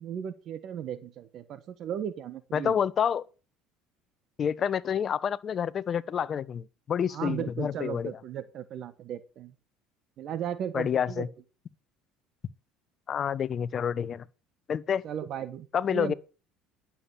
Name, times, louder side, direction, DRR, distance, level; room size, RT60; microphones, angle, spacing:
voice 1, 0.0-2.8 7.1-9.5 10.2-11.3 15.0-16.1, right 9 dB, 55° right, 1.3 m, -36 dB
voice 2, 2.5-3.2 4.4-8.1 10.7-11.3 13.1-14.3 14.7-15.0 15.7-16.1, left 8 dB, 40° left, 0.8 m, -28 dB
11.0 x 7.3 x 7.0 m
supercardioid pair, 90°, 0 cm